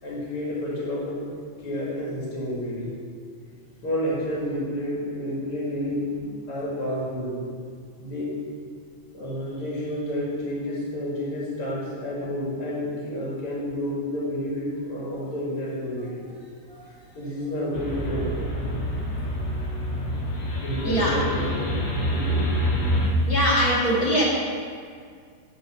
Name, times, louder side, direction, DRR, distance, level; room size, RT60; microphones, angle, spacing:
voice 1, 0.0-1.2 1.6-3.0 3.8-7.4 8.0-8.3 9.1-16.3 17.1-18.6 20.6-22.4, left 1 dB, 45° left, -6 dB, 2.7 m, -30 dB
sound 1, 17.7-23.1, equal, 65° left, 2.0 m, -27 dB
voice 2, 23.3-24.2, equal, 30° left, -6 dB, 0.7 m, -22 dB
9.7 x 4.6 x 5.6 m, 2.1 s
omnidirectional pair, 3.8 m